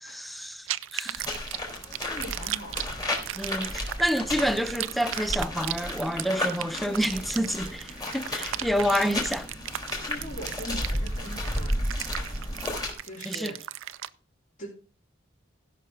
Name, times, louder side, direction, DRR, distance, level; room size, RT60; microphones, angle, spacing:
voice 1, 0.0-1.2 3.4-9.5 13.3-13.6, equal, ahead, 0.4 m, -28 dB
sound 1, 0.7-14.1, right 13 dB, 80° right, 0.5 m, -36 dB
sound 2, 1.2-12.9, left 1 dB, 20° left, 3.4 m, -33 dB
voice 2, 2.0-2.9 10.0-12.0 13.0-13.6 14.6-14.7, equal, 40° left, 3.9 m, -40 dB
16.5 x 6.0 x 4.7 m
head